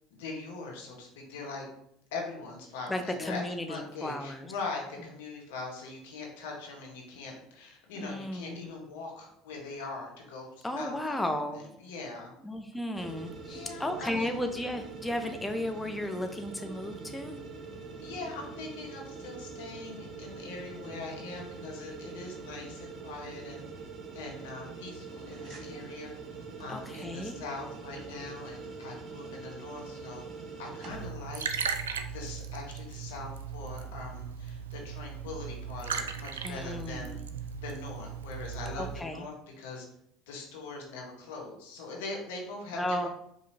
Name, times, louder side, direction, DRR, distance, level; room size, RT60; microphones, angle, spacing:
voice 1, 0.1-1.6 2.1-3.4 3.7-12.3 13.5-14.3 18.0-23.6 24.1-26.1 26.6-30.2 30.6-31.6 32.1-37.2 37.6-39.8 40.3-43.1, left 3 dB, 80° left, 0 dB, 1.1 m, -42 dB
voice 2, 2.9-4.5 8.0-8.7 10.6-11.7 12.4-17.3 26.7-27.4 36.4-37.2 38.8-39.2 42.7-43.1, left 1 dB, 10° left, 6 dB, 0.5 m, -34 dB
sound 1, 12.9-31.1, right 4 dB, 45° right, 0.9 m, -44 dB
Liquid, 30.9-39.0, right 6 dB, 85° right, 0.3 m, -37 dB
4.9 x 2.7 x 2.7 m, 0.73 s
hypercardioid pair, 70°, 0 cm